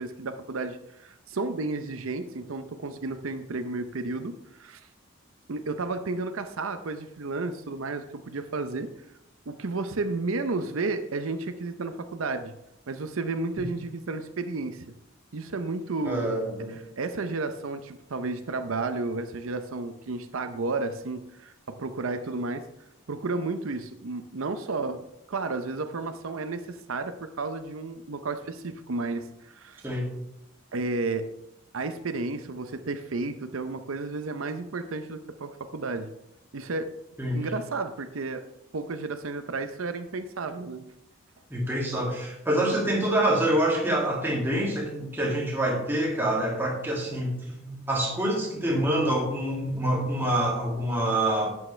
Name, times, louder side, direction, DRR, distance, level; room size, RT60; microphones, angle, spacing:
voice 1, 0.0-4.9 5.5-8.9 9.5-12.5 12.9-14.8 15.3-16.3 16.7-22.7 23.1-29.9 30.7-31.3 31.7-36.1 36.5-36.9 37.3-38.4 38.7-40.9, right 3 dB, 90° right, 9 dB, 0.7 m, -32 dB
voice 2, 16.1-16.7 29.8-30.1 37.2-37.4 41.5-47.3 47.6-51.5, right 1 dB, 10° right, -3 dB, 2.2 m, -26 dB
11.0 x 8.6 x 3.3 m, 0.85 s
head